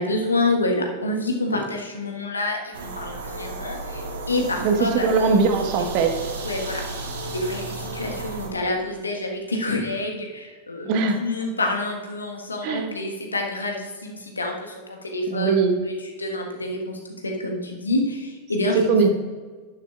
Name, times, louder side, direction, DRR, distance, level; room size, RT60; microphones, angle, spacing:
voice 1, 0.0-5.4 5.9-6.0 6.4-7.0 7.3-19.0, left 2 dB, 75° left, 1 dB, 1.4 m, -28 dB
sound 1, 2.7-8.5, right 2 dB, 65° right, 1.7 m, -33 dB
voice 2, 4.6-6.3 10.8-11.2 12.6-12.9 15.3-15.8 18.9-19.1, right 5 dB, 45° right, 5 dB, 1.3 m, -20 dB
11.0 x 10.5 x 2.4 m, 1.5 s
figure-of-eight pair, 90°, 0 cm